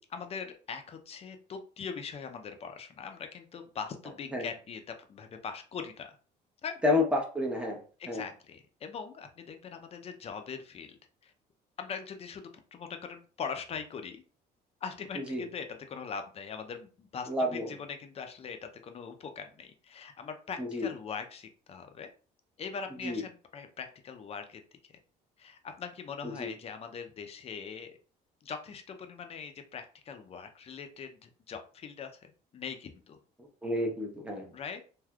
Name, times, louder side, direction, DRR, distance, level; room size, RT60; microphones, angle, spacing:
voice 1, 0.1-6.2 6.6-6.8 8.0-11.0 11.2-11.3 11.8-14.2 14.8-22.1 22.6-24.6 25.4-28.0 28.4-33.2 34.5-34.8, left 6 dB, 35° left, 6 dB, 0.5 m, -41 dB
voice 2, 6.8-7.8 8.1-8.2 15.3-15.4 17.3-17.7 20.6-20.9 23.0-23.2 26.2-26.5 33.6-34.5, left 2 dB, 5° right, 0 dB, 0.8 m, -29 dB
3.4 x 2.6 x 2.3 m, 0.38 s
cardioid pair, 110°, 17 cm